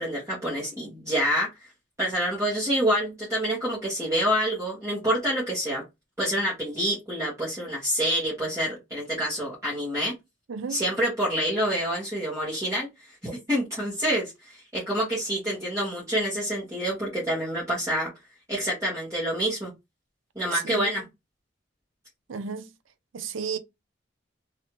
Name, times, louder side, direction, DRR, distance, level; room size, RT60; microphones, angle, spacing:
voice 1, 0.0-1.5 2.0-5.8 6.2-10.1 10.7-12.9 13.2-18.1 18.5-19.7 20.3-21.0, equal, 15° right, 1.4 m, -27 dB
voice 2, 20.5-20.9 22.3-22.7 23.1-23.6, right 6 dB, 90° right, 0.5 m, -32 dB
3.1 x 2.7 x 3.0 m
head